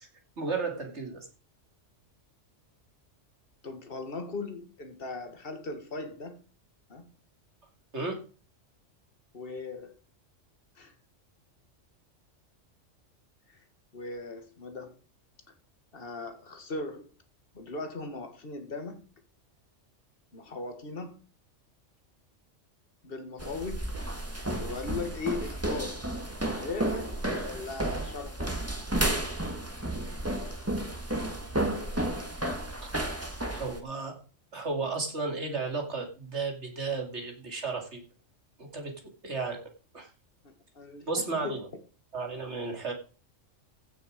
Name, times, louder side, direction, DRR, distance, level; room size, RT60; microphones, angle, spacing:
voice 1, 0.4-1.3 7.9-8.2 33.5-34.2 34.5-38.0 38.6-38.9 39.2-39.6 39.9-40.1 41.0-41.7 42.1-42.9, right 4 dB, 65° right, 2.9 m, -33 dB
voice 2, 3.6-6.4 6.9-7.1 9.3-9.9 10.8-10.9 13.5-13.6 13.9-15.0 15.9-17.1 17.5-19.0 20.3-21.2 23.0-23.9 24.6-26.0 26.4-27.1 27.4-28.6 32.7-32.9 40.4-41.6, left 3 dB, 50° left, 2.2 m, -38 dB
sound 1, 23.4-33.8, right 1 dB, 10° right, 1.8 m, -32 dB
15.5 x 6.8 x 5.1 m
omnidirectional pair, 1.3 m